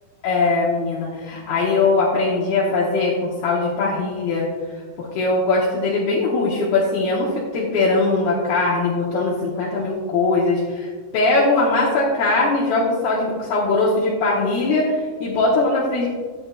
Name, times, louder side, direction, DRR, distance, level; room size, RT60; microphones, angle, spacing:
voice 1, 0.2-4.5 5.0-16.1, left 3 dB, 75° left, -5 dB, 2.7 m, -20 dB
11.0 x 8.8 x 2.3 m, 1.5 s
omnidirectional pair, 4.8 m